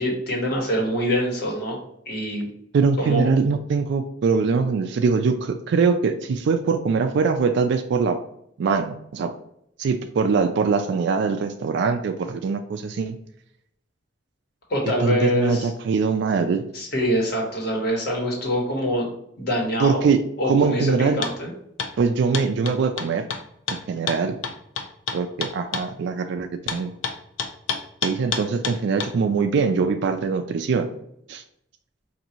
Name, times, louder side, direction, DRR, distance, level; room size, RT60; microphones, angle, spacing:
voice 1, 0.0-1.8 2.1-2.5 3.0-3.2 14.7-15.7 16.7-19.1 19.4-20.0 20.4-21.5, equal, 55° left, -1 dB, 1.4 m, -24 dB
voice 2, 2.7-8.2 8.6-9.3 9.8-13.2 15.0-16.6 19.8-21.2 22.0-23.3 23.7-24.4 25.1-26.9 28.0-30.9 31.3-31.4, right 5 dB, 65° right, 7 dB, 0.3 m, -22 dB
sound 1, 21.2-21.4 21.8-21.9 22.3-25.9 26.7-29.1, left 5 dB, 85° left, 0.5 m, -29 dB
5.0 x 2.6 x 2.9 m, 0.74 s
head